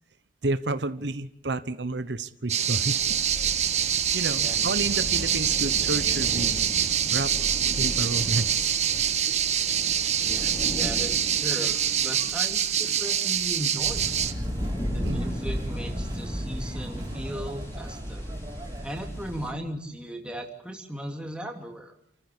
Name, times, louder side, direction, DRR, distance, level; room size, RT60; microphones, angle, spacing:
voice 1, 0.4-3.0 4.1-6.6 7.1-7.3 7.8-8.7 15.0-15.2, right 2 dB, 80° right, 12 dB, 1.1 m, -30 dB
sound 1, 2.5-14.3, right 9 dB, 40° right, 1.3 m, -25 dB
sound 2, 2.6-19.5, equal, 15° left, 4.2 m, -37 dB
voice 2, 4.4-4.7 4.9-5.1 10.2-14.1 14.9-18.3 18.8-21.9, equal, 5° right, 2 dB, 2.9 m, -37 dB
sound 3, 13.8-19.5, equal, 25° right, 4.1 m, -35 dB
29.0 x 14.5 x 8.6 m, 0.77 s
head